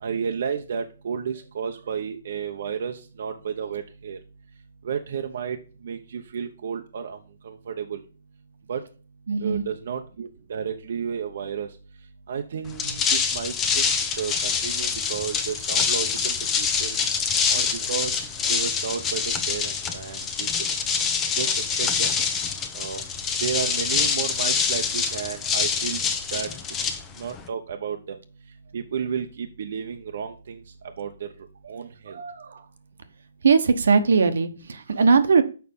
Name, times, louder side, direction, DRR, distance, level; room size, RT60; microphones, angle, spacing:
voice 1, 0.0-4.2 4.8-5.6 5.8-7.2 7.4-8.0 8.7-8.8 9.4-11.7 12.3-13.8 14.2-17.0 17.5-20.7 21.3-22.1 22.7-23.0 23.4-26.0 26.3-26.5 27.2-28.2 28.7-30.6 31.0-31.3 31.7-32.2, right 7 dB, 60° right, 4 dB, 0.8 m, -32 dB
voice 2, 9.3-9.6 31.8-32.6 33.4-35.4, right 5 dB, 75° right, 9 dB, 1.1 m, -20 dB
sound 1, 12.7-27.5, left 6 dB, 15° left, 0.8 m, -25 dB
6.9 x 5.5 x 5.4 m, 0.36 s
hypercardioid pair, 150°, 0 cm